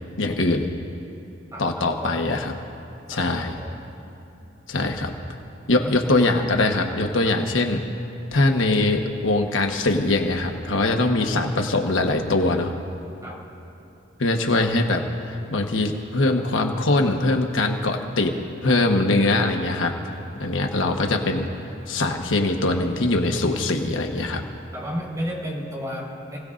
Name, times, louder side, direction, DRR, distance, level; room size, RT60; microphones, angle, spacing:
voice 1, 0.2-0.7 1.6-2.5 3.1-3.6 4.7-5.1 5.7-7.8 8.3-12.7 14.2-18.3 18.6-20.1 20.4-21.5 21.9-24.4, left 2 dB, 90° left, 3 dB, 1.2 m, -22 dB
voice 2, 1.5-2.2 3.1-3.8 4.4-4.5 5.8-6.0 7.2-7.4 13.2-13.4 24.7-26.4, equal, 20° right, -4 dB, 4.6 m, -34 dB
29.0 x 17.0 x 2.5 m, 2.9 s
head